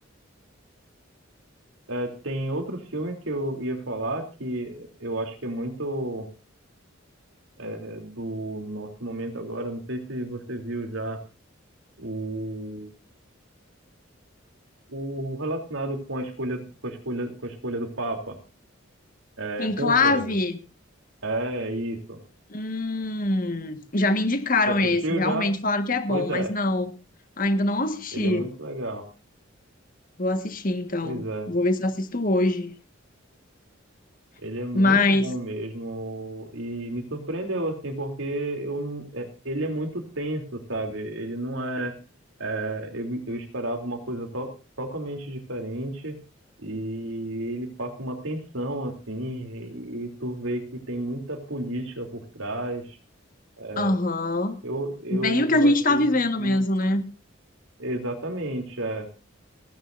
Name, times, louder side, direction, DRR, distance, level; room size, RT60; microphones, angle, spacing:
voice 1, 1.9-6.3 7.6-11.2 12.0-12.9 14.9-18.4 19.4-20.4 21.2-22.2 24.7-24.8 25.0-25.5 26.1-26.5 28.1-29.1 31.0-31.5 34.4-41.9 42.4-44.5 44.8-46.2 46.6-53.0 53.6-54.0 54.6-56.6 57.8-59.1, right 1 dB, 85° right, 3.3 m, -31 dB
voice 2, 19.6-20.6 22.5-26.9 27.4-28.5 30.2-32.7 34.7-35.3 53.8-54.6 55.1-57.0, left 2 dB, 45° left, 1.7 m, -23 dB
30.0 x 10.0 x 2.7 m
head